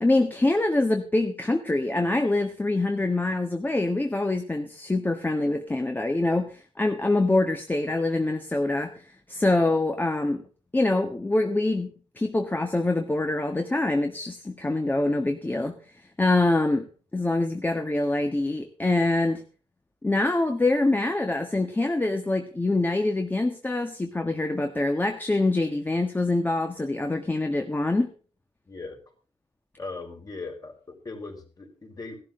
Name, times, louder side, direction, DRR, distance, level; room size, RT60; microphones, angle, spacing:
voice 1, 0.0-10.4 10.7-16.9 17.1-19.4 20.0-28.1, left 2 dB, 15° left, 5 dB, 1.4 m, -25 dB
voice 2, 28.7-29.0 29.8-32.2, left 3 dB, 35° left, 3 dB, 4.7 m, -39 dB
17.0 x 12.5 x 3.8 m, 0.39 s
wide cardioid pair, 135°, 12 cm